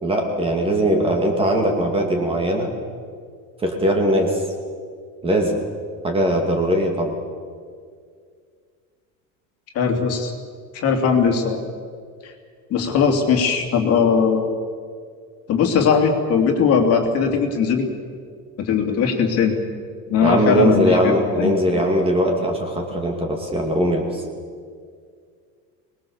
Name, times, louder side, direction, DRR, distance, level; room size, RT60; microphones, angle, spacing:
voice 1, 0.0-2.7 3.6-4.4 5.2-5.6 6.0-7.1 20.2-24.2, right 1 dB, 15° right, 2 dB, 2.3 m, -20 dB
voice 2, 9.7-10.3 10.7-11.6 12.2-12.3 12.7-14.6 15.5-17.9 18.6-19.6 20.1-21.6, left 6 dB, 40° left, 3 dB, 2.7 m, -19 dB
25.0 x 20.0 x 7.1 m, 2.1 s
cardioid pair, 170°, 36 cm